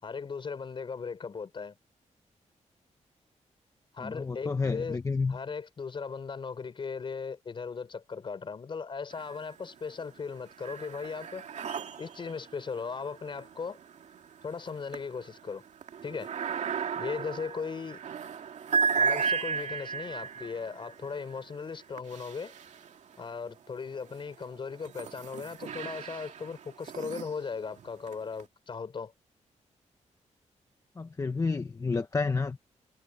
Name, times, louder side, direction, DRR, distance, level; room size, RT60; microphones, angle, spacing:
voice 1, 0.0-1.8 3.9-5.0 5.3-11.5 12.0-13.8 14.4-15.6 16.0-16.3 17.0-18.0 19.0-22.5 23.2-29.1, left 5 dB, 40° left, 4.2 m, -38 dB
voice 2, 4.0-5.4 31.0-32.7, left 4 dB, 25° left, 1.0 m, -30 dB
sound 1, 9.1-9.8 10.1-23.3 23.9-28.4, right 5 dB, 70° right, 2.3 m, -35 dB
wide cardioid pair, 135°, 12 cm